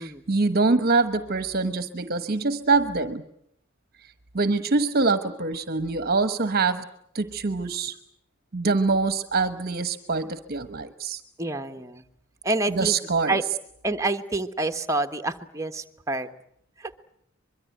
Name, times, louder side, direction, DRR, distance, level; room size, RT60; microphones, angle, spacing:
voice 1, 0.0-3.2 4.3-6.8 7.1-8.0 8.5-11.2 12.7-13.4, right 3 dB, 45° right, 11 dB, 1.1 m, -24 dB
voice 2, 11.4-12.0 12.4-13.0 13.3-13.4 13.8-16.3 16.8-16.9, right 2 dB, 15° right, 7 dB, 1.3 m, -27 dB
24.0 x 23.0 x 9.2 m, 0.74 s
head